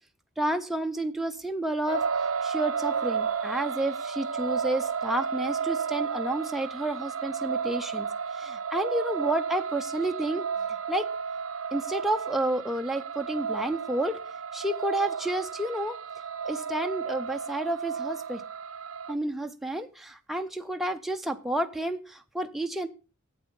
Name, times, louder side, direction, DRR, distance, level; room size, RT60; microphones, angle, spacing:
voice 1, 0.4-2.0 2.4-8.1 8.3-10.4 10.9-11.1 11.7-14.2 14.5-16.0 16.4-18.4 19.1-22.9, right 1 dB, ahead, 4 dB, 0.5 m, -30 dB
sound 1, 1.9-19.1, right 6 dB, 80° right, 0.7 m, -32 dB
9.4 x 8.0 x 5.3 m, 0.34 s
head